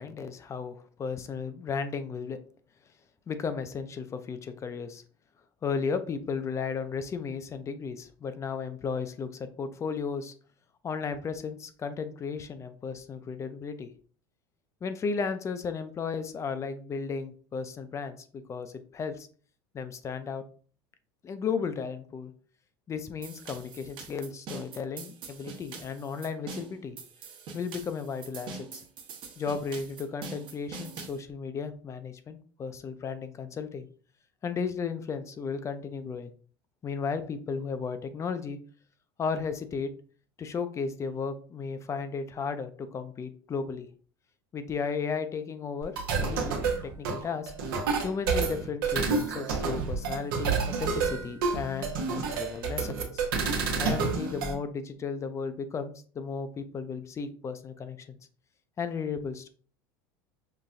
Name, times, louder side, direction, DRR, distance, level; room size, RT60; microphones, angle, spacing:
voice 1, 0.0-2.4 3.3-5.0 5.6-10.3 10.8-13.9 14.8-19.3 19.7-20.4 21.2-22.3 22.9-27.0 27.5-28.8 29.4-33.9 34.4-36.3 36.8-38.6 39.2-39.9 40.4-43.9 44.5-47.5 48.0-53.2 53.8-58.2 58.8-59.5, left 5 dB, 25° left, 10 dB, 0.5 m, -34 dB
sound 1, 23.2-31.2, right 4 dB, 45° right, 1.0 m, -44 dB
sound 2, 45.8-54.5, right 5 dB, 90° right, 0.9 m, -29 dB
5.6 x 2.2 x 2.5 m, 0.42 s
supercardioid pair, 115°, 11 cm